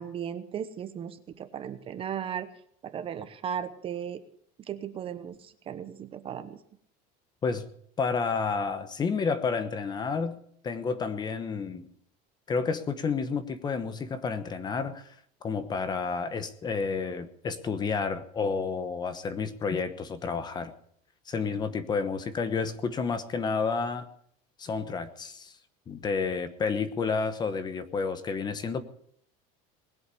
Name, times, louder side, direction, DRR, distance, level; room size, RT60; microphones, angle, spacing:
voice 1, 0.0-2.5 2.8-4.2 4.7-6.6, right 9 dB, 30° right, 11 dB, 1.0 m, -36 dB
voice 2, 8.0-11.9 12.5-15.1 15.4-20.7 21.3-24.1 24.6-25.5 25.9-28.8, left 5 dB, 20° left, 11 dB, 1.1 m, -30 dB
20.0 x 8.1 x 8.4 m, 0.66 s
cardioid pair, 160°, 19 cm